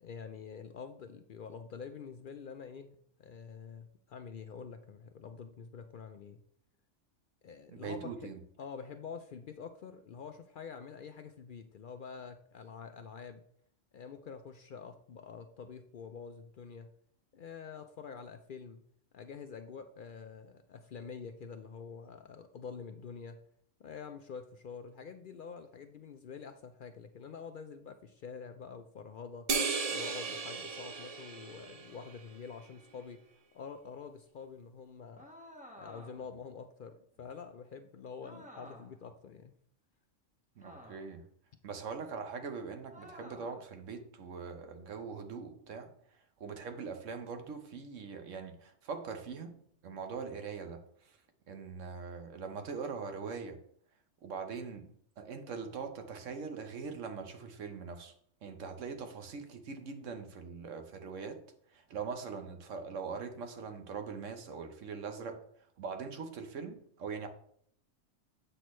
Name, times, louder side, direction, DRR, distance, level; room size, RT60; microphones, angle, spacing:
voice 1, 0.0-6.4 7.4-8.3 8.6-13.4 13.9-16.9 17.3-18.8 19.1-23.4 23.8-29.5 29.9-33.2 33.5-35.3 35.7-39.5, left 6 dB, 60° left, 0.5 m, -47 dB
voice 2, 7.7-8.4 40.6-41.3 41.6-45.9 46.4-49.6 49.8-50.8 51.5-53.6 54.2-58.1 58.4-61.4 61.7-65.4 65.8-67.3, right 5 dB, 85° right, 1.2 m, -42 dB
sound 1, 29.5-32.2, right 5 dB, 45° right, 0.5 m, -35 dB
sound 2, 35.2-36.4 38.2-39.0 40.6-41.3 42.9-43.7, equal, 5° right, 1.0 m, -52 dB
7.7 x 6.1 x 3.1 m
omnidirectional pair, 1.2 m